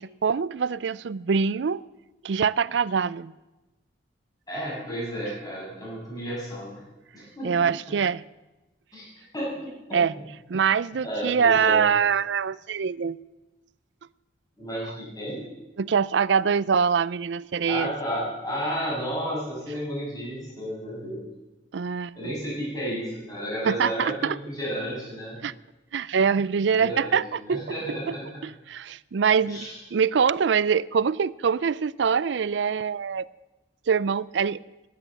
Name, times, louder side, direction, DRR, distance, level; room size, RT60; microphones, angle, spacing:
voice 1, 0.0-1.8 2.2-3.3 7.4-8.2 9.9-10.2 10.5-13.2 15.8-17.9 21.7-22.1 23.6-24.4 25.4-25.5 25.9-27.6 28.1-28.2 28.7-33.3 33.9-34.6, right 6 dB, 70° right, 0.4 m, -24 dB
voice 2, 4.5-6.8 7.1-7.5 7.9-8.0 8.9-9.1 9.3-9.5 9.9-10.2 11.0-11.8 14.6-15.4 17.7-21.2 22.1-25.4 26.8-28.4 29.5-29.8, equal, 20° left, 6.9 m, -32 dB
16.0 x 10.5 x 7.8 m
head